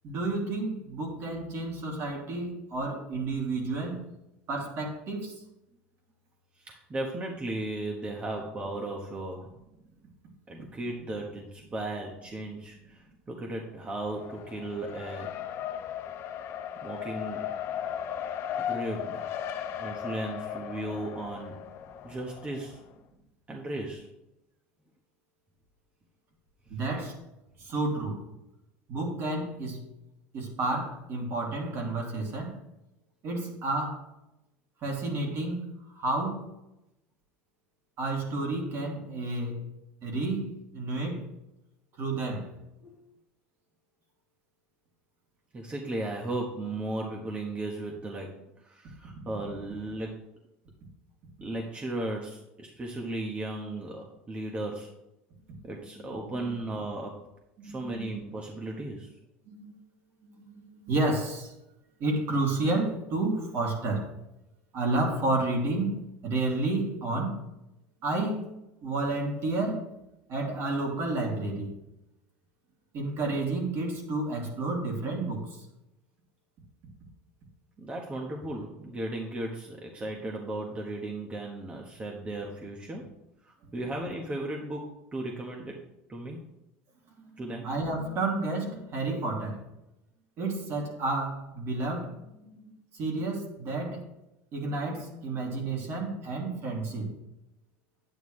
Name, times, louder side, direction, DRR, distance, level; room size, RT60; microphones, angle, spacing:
voice 1, 0.0-4.1 4.5-5.4 26.7-27.2 27.6-28.3 28.9-29.8 30.3-32.6 33.2-34.0 34.8-36.5 38.0-39.7 40.0-41.3 42.0-42.5 55.5-56.5 57.6-58.2 59.5-59.7 60.2-61.5 62.0-64.1 64.7-67.4 68.0-68.5 68.8-69.9 70.3-71.7 72.9-75.7 87.3-89.7 90.4-92.6 92.9-94.1 94.5-97.2, right 2 dB, 50° right, 2.7 m, -31 dB
voice 2, 6.5-9.5 10.5-15.3 16.8-17.5 18.6-19.3 19.8-21.5 22.0-22.8 23.5-24.1 26.7-26.8 42.8-43.0 45.5-48.3 48.6-50.2 51.4-54.9 55.6-57.1 57.6-59.1 77.8-83.0 83.4-85.8 86.1-86.4 87.4-87.7, right 2 dB, 20° right, 1.3 m, -36 dB
Race car auto racing, 13.8-22.9, left 9 dB, 50° left, 0.8 m, -37 dB
9.2 x 9.0 x 3.2 m
supercardioid pair, 100°, 6 cm